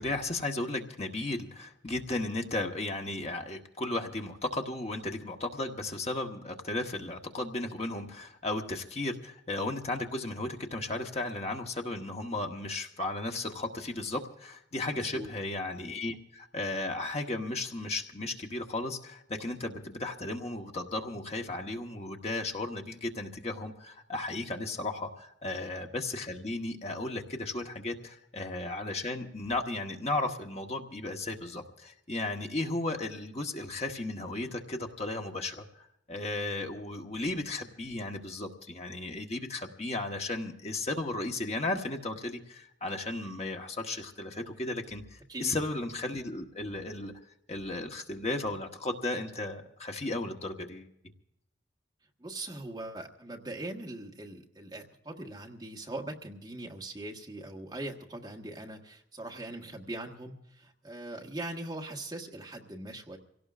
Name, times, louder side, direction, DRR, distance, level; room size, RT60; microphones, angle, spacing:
voice 1, 0.0-47.1 47.5-50.9, left 2 dB, 35° left, 3 dB, 1.1 m, -35 dB
voice 2, 14.9-15.3 45.3-45.6 52.2-63.2, right 1 dB, 20° right, 0 dB, 1.4 m, -41 dB
26.5 x 17.5 x 2.4 m, 0.79 s
head